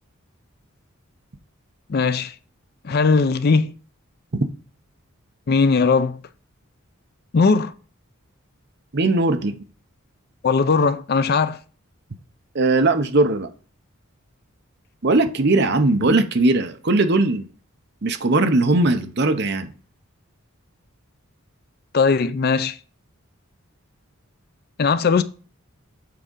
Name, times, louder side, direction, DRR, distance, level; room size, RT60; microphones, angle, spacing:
voice 1, 1.9-2.3 2.8-3.7 5.5-6.2 7.3-7.7 10.4-11.6 21.9-22.8 24.8-25.2, left 4 dB, 45° left, 0.4 m, -19 dB
voice 2, 8.9-9.6 12.5-13.5 15.0-17.4 18.0-19.7, right 2 dB, 50° right, 0.7 m, -19 dB
7.6 x 3.7 x 5.3 m
head